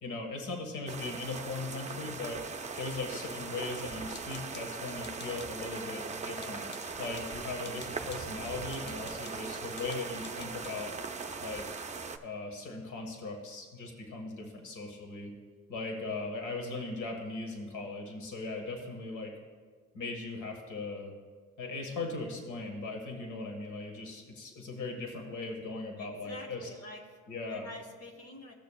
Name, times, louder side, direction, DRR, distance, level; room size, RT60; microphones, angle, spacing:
voice 1, 0.0-2.4 2.8-6.7 7.0-10.9 11.4-11.6 12.2-15.3 15.7-19.3 19.9-21.1 21.6-26.7 27.3-27.7, left 3 dB, 75° left, 1 dB, 1.6 m, -39 dB
sound 1, 0.9-12.2, right 4 dB, 25° right, 0.5 m, -40 dB
sound 2, 4.1-5.6 6.0-11.1, left 4 dB, 35° left, 0.6 m, -53 dB
voice 2, 26.0-28.5, left 2 dB, 55° left, 3 dB, 1.4 m, -48 dB
15.5 x 6.7 x 2.3 m, 1.5 s
cardioid pair, 90°, 30 cm